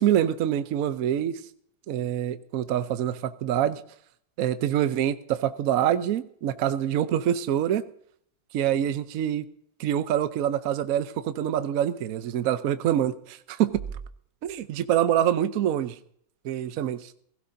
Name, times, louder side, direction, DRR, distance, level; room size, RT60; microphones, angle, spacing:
voice 1, 0.0-1.4 1.9-3.8 4.4-7.9 8.5-9.4 9.8-13.1 13.6-13.7 14.4-16.0 16.4-17.1, right 10 dB, 65° right, 11 dB, 0.9 m, -25 dB
16.5 x 15.5 x 2.7 m, 0.65 s
omnidirectional pair, 2.2 m